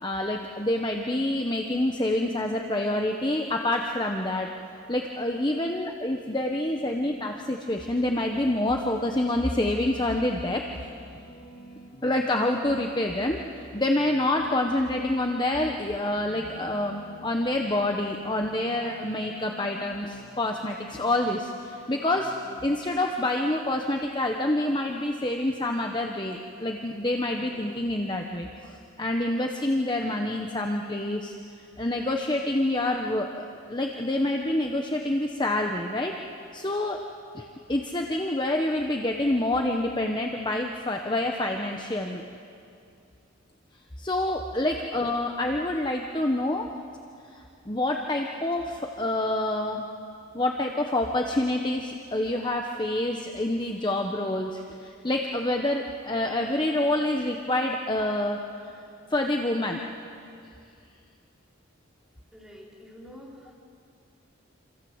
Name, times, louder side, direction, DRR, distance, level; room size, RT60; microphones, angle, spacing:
voice 1, 0.0-4.5 4.9-10.9 12.0-22.3 22.6-31.3 31.8-36.1 36.5-37.0 37.3-42.2 44.0-46.7 47.3-49.9 50.3-58.4 59.1-59.8, left 1 dB, 20° left, 2 dB, 1.1 m, -27 dB
sound 1, 6.8-7.3 7.8-22.8, right 1 dB, 45° left, 3.8 m, -50 dB
voice 2, 62.3-63.5, equal, ahead, -5 dB, 5.1 m, -47 dB
27.5 x 27.0 x 8.1 m, 2.5 s
head